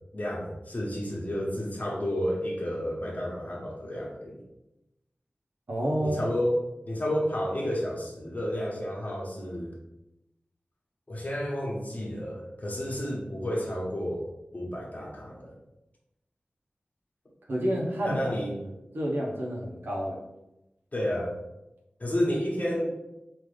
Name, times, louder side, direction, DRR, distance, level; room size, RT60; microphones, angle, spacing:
voice 1, 0.1-4.4 6.0-6.6 6.8-9.7 11.1-14.2 14.5-15.5 18.1-18.5 20.9-21.3 22.0-22.9, equal, 50° left, -2 dB, 1.1 m, -31 dB
voice 2, 5.7-6.3 17.5-18.3 18.9-20.2, equal, 80° right, -3 dB, 1.0 m, -29 dB
3.8 x 2.8 x 3.3 m, 0.91 s
wide cardioid pair, 45°, 3 cm